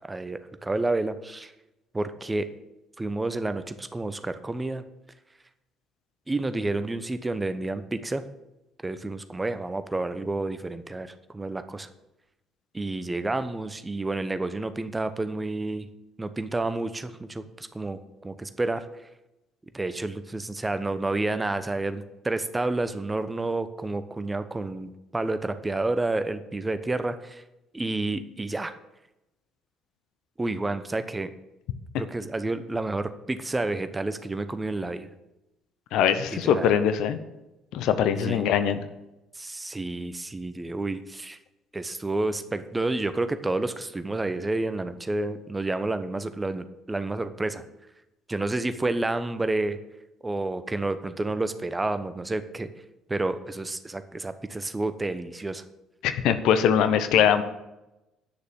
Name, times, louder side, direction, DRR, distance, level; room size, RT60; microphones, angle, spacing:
voice 1, 0.1-1.5 1.9-2.5 3.0-4.8 6.3-8.2 8.8-11.9 12.7-15.9 16.2-18.8 19.7-27.4 27.7-28.7 30.4-31.3 32.0-35.1 36.4-36.7 38.2-38.5 39.4-41.4 41.7-47.6 48.3-49.8 50.2-52.7 53.1-55.6, right 2 dB, 20° right, 11 dB, 0.9 m, -30 dB
voice 2, 35.9-37.2 37.7-38.8 56.0-57.4, left 8 dB, 65° left, 11 dB, 0.8 m, -22 dB
9.9 x 6.7 x 7.0 m, 0.95 s
hypercardioid pair, 50°, 0 cm